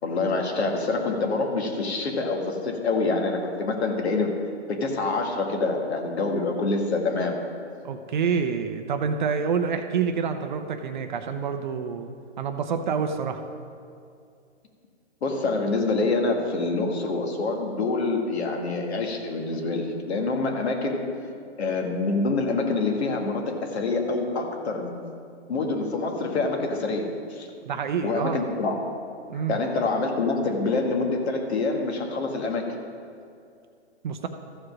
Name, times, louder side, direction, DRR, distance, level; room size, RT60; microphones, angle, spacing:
voice 1, 0.0-4.3 4.7-7.4 15.2-21.0 21.6-25.1 25.5-27.5 28.0-28.9 29.5-32.7, left 3 dB, 60° left, 3 dB, 1.7 m, -26 dB
voice 2, 7.8-12.1 12.4-13.4 27.6-28.4 29.3-29.6 34.0-34.3, right 6 dB, 40° right, 7 dB, 0.6 m, -27 dB
14.0 x 4.9 x 6.1 m, 2.4 s
hypercardioid pair, 150°, 36 cm